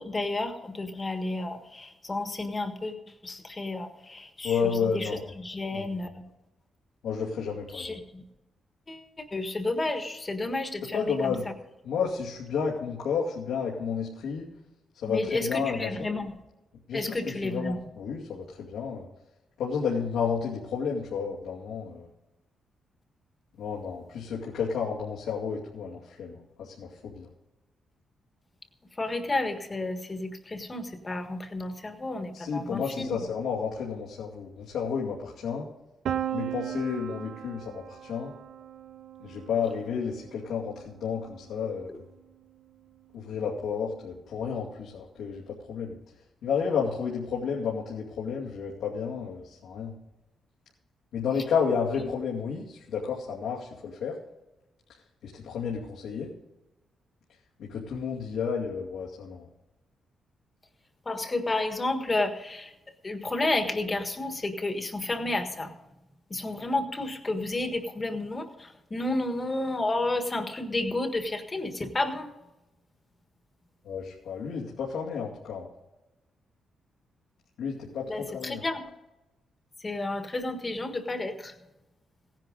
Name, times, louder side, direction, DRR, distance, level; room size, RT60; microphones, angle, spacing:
voice 1, 0.0-6.2 7.7-8.2 8.9-11.5 15.0-16.3 16.9-17.8 29.0-33.2 61.0-62.7 63.0-65.8 66.3-72.3 78.1-78.8 79.8-81.5, left 2 dB, 20° left, 6 dB, 1.6 m, -31 dB
voice 2, 4.4-5.2 5.7-5.8 7.0-8.0 10.9-11.5 11.8-14.5 15.0-16.1 16.9-19.1 19.6-22.1 23.6-27.3 32.3-35.7 36.3-38.3 39.2-41.9 43.1-46.0 46.4-49.9 51.1-54.1 55.2-56.3 57.6-59.5 73.8-75.7 77.6-78.6, left 6 dB, 90° left, -5 dB, 2.5 m, -31 dB
Piano, 36.1-41.8, right 11 dB, 70° right, 0.5 m, -37 dB
17.0 x 10.5 x 3.9 m, 0.97 s
cardioid pair, 140°, 0 cm